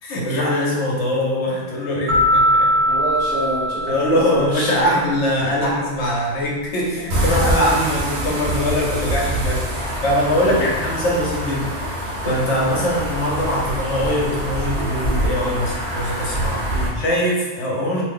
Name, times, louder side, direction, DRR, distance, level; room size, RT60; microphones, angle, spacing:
voice 1, 0.0-2.7 3.9-18.0, equal, 70° left, -4 dB, 0.9 m, -22 dB
sound 1, 2.1-4.8, equal, 85° right, 1.1 m, -20 dB
voice 2, 2.8-5.0 5.6-5.7 7.0-7.1 10.4-10.9 16.7-17.0, right 1 dB, 40° right, -9 dB, 1.0 m, -28 dB
sound 2, 7.1-16.9, right 1 dB, 65° right, 0.8 m, -25 dB
2.5 x 2.0 x 3.6 m, 1.2 s
omnidirectional pair, 1.3 m